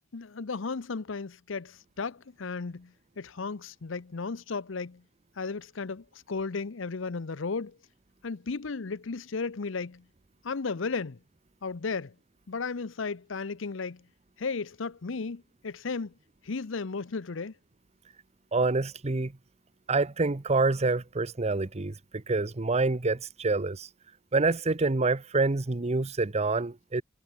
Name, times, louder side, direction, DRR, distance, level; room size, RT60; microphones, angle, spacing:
voice 1, 0.1-5.0 5.4-7.8 8.2-10.0 10.4-11.2 11.6-12.1 12.5-14.0 14.4-16.1 16.4-17.5, left 4 dB, 75° left, 0.7 m, -34 dB
voice 2, 18.5-19.3 19.9-23.9 24.3-27.0, right 3 dB, 35° right, 0.8 m, -27 dB
head